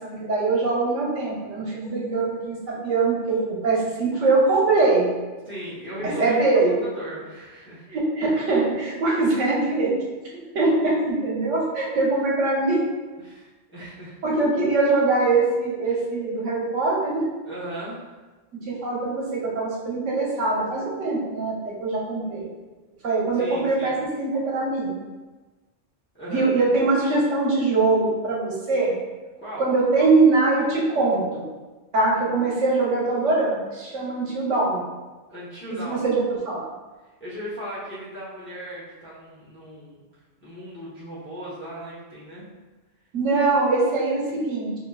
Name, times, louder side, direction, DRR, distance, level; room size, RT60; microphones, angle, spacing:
voice 1, 0.0-5.1 6.2-6.7 7.9-9.9 10.5-12.8 14.2-17.3 18.7-21.5 21.8-22.5 23.0-24.9 26.3-28.9 29.6-31.4 31.9-34.8 35.8-36.6 43.1-44.8, right 3 dB, 80° right, -4 dB, 1.3 m, -22 dB
voice 2, 5.4-6.4 6.6-7.9 13.2-14.1 15.9-16.0 17.5-18.1 23.3-24.0 26.1-26.5 29.4-29.7 35.3-36.0 37.2-40.0 40.4-42.5, right 1 dB, 10° left, -10 dB, 0.7 m, -37 dB
5.2 x 2.7 x 2.3 m, 1.2 s
omnidirectional pair, 1.2 m